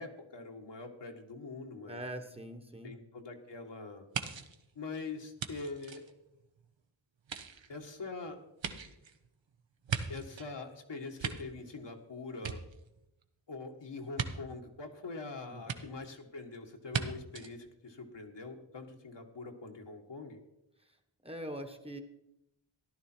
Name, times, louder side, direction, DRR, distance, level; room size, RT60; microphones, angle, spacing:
voice 1, 0.0-2.0 2.8-4.0 4.8-6.0 7.7-8.4 10.1-12.6 13.5-20.4, left 3 dB, 60° left, 3 dB, 1.7 m, -44 dB
voice 2, 1.9-3.0 15.5-15.8 20.8-21.0 21.2-22.0, right 1 dB, 10° right, 5 dB, 1.3 m, -43 dB
sound 1, 4.1-6.7 7.2-10.5 10.9-12.0 12.3-13.2 14.1-14.3 15.7-15.8 16.9-17.0 17.3-17.5, right 7 dB, 70° right, 1.1 m, -39 dB
14.5 x 11.0 x 4.5 m, 0.87 s
wide cardioid pair, 80°, 47 cm